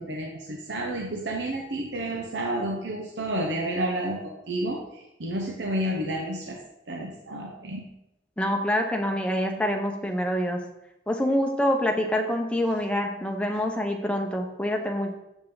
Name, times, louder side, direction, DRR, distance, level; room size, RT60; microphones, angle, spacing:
voice 1, 0.0-6.6 6.9-7.8, right 1 dB, 80° right, 0 dB, 0.8 m, -30 dB
voice 2, 8.4-10.7 11.1-15.1, equal, 5° left, 2 dB, 0.7 m, -26 dB
7.3 x 5.5 x 3.9 m, 0.91 s
head